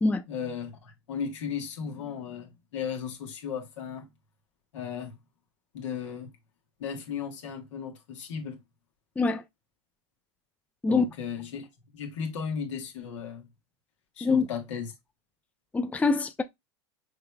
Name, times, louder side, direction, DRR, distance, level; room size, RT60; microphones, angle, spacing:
voice 1, 0.3-4.1 4.7-5.2 5.7-6.3 6.8-8.6 10.9-11.7 11.9-13.5 14.2-14.9, left 7 dB, 75° left, 1.4 m, -35 dB
voice 2, 15.7-16.4, left 4 dB, 10° left, 0.5 m, -24 dB
5.7 x 3.3 x 2.3 m
hypercardioid pair, 85°, 16 cm